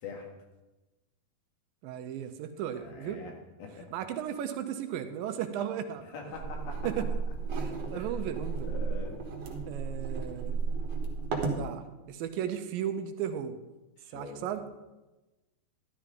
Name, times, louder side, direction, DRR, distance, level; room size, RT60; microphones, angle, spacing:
voice 1, 1.8-3.2 3.9-6.1 6.8-7.1 7.6-8.7 9.7-10.6 11.6-13.6 14.1-14.6, right 9 dB, 80° right, 8 dB, 2.4 m, -35 dB
voice 2, 2.7-3.3 3.6-3.9 6.1-6.9 7.9-8.1 8.6-9.2 14.0-14.6, left 4 dB, 85° left, 1 dB, 3.8 m, -43 dB
sound 1, 6.3-11.6, right 4 dB, 55° right, 2.0 m, -33 dB
12.5 x 11.5 x 3.7 m, 1.1 s
omnidirectional pair, 4.2 m